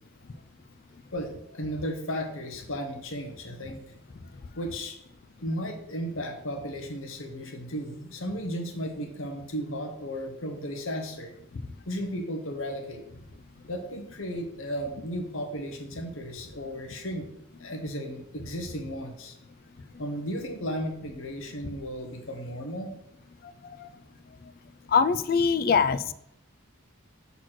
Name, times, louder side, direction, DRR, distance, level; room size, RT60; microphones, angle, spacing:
voice 1, 1.1-4.0 4.6-5.0 5.4-11.3 11.9-13.0 13.7-17.2 17.6-19.3 20.0-22.9, equal, 65° left, 4 dB, 1.2 m, -34 dB
voice 2, 24.9-26.1, left 5 dB, 45° left, 13 dB, 0.3 m, -23 dB
6.1 x 4.2 x 6.1 m, 0.76 s
head